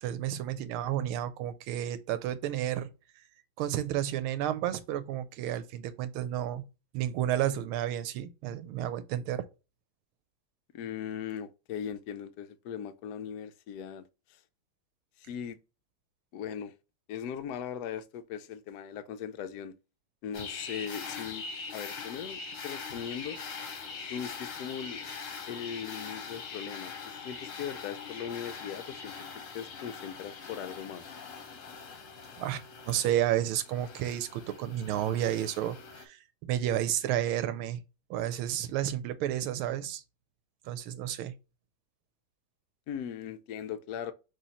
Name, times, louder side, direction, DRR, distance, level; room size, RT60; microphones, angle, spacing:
voice 1, 0.0-2.9 3.6-6.6 6.9-9.5 32.4-37.8 38.1-40.0 40.6-41.3, right 11 dB, 90° right, 1.5 m, -31 dB
voice 2, 10.7-14.4 15.2-15.6 16.3-16.7 17.1-19.8 20.2-21.4 21.7-23.4 24.1-25.0 25.5-29.1 29.5-31.0 42.9-44.1, left 8 dB, 80° left, 0.9 m, -39 dB
sound 1, 20.3-36.0, left 5 dB, 50° left, 1.0 m, -42 dB
6.2 x 2.8 x 2.9 m
omnidirectional pair, 2.3 m